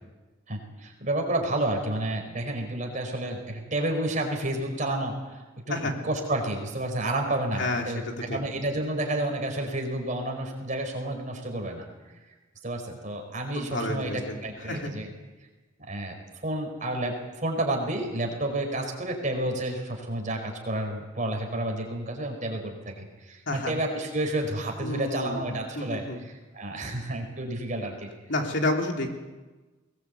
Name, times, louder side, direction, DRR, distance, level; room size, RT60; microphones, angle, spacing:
voice 1, 0.5-5.1 5.7-11.8 12.6-15.1 15.8-16.2 16.4-17.1 17.4-28.1, right 1 dB, 40° right, 3 dB, 4.7 m, -30 dB
voice 2, 7.6-8.4 13.5-14.4 14.7-14.9 23.5-23.7 24.8-25.4 25.7-26.2 28.3-29.2, left 1 dB, 60° left, 2 dB, 3.1 m, -30 dB
22.0 x 19.5 x 8.2 m, 1.2 s
head